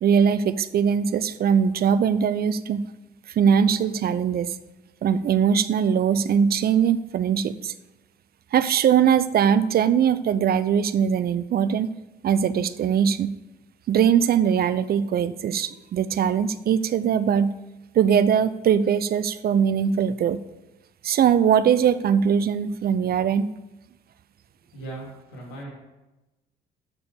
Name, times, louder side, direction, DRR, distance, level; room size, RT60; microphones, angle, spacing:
voice 1, 0.0-2.8 3.3-4.6 5.0-7.7 8.5-11.9 12.2-13.3 13.9-17.5 17.9-20.4 21.0-23.5, right 8 dB, 45° right, 14 dB, 0.5 m, -21 dB
voice 2, 24.7-25.7, right 2 dB, 75° left, -3 dB, 3.3 m, -38 dB
7.0 x 6.9 x 6.6 m, 1.0 s
hypercardioid pair, 50°, 21 cm